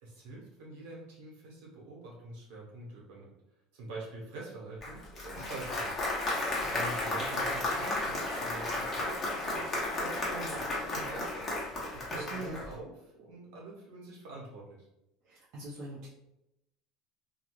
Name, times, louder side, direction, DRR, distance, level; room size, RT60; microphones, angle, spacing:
voice 1, 0.0-3.3 3.7-6.0 6.7-11.5 11.9-12.9 13.2-14.9, right 2 dB, 80° right, -3 dB, 1.0 m, -45 dB
Applause, 4.8-12.7, left 2 dB, 25° left, 0.9 m, -33 dB
voice 2, 12.1-12.6 15.2-16.1, right 1 dB, 60° right, -6 dB, 0.6 m, -42 dB
2.4 x 2.2 x 3.0 m, 0.88 s
supercardioid pair, 125°, 0 cm